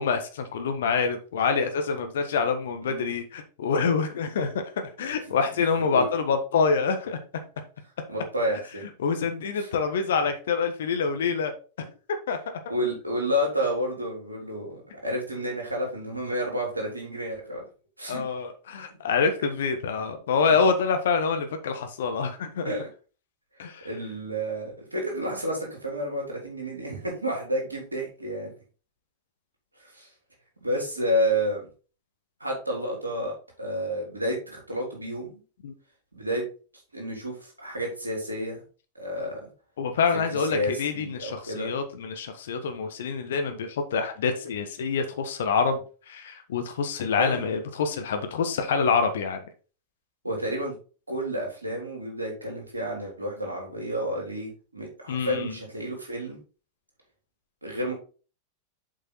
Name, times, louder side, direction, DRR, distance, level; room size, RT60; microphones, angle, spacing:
voice 1, 0.0-7.2 9.0-11.5 12.1-12.6 18.1-22.7 23.6-23.9 35.6-35.7 39.8-49.4 55.1-55.6, left 5 dB, 60° left, 7 dB, 1.3 m, -26 dB
voice 2, 5.8-6.1 8.1-8.9 9.6-9.7 12.7-17.6 18.0-18.2 18.9-19.0 20.4-20.5 22.6-22.9 23.8-28.5 29.8-30.1 30.6-31.6 32.4-35.4 36.1-36.4 36.9-38.6 39.0-39.5 40.5-41.7 47.1-47.5 50.2-50.8 51.1-56.4 57.6-57.9, equal, 85° right, -1 dB, 3.4 m, -30 dB
7.4 x 5.4 x 4.2 m, 0.36 s
figure-of-eight pair, 90°, 0 cm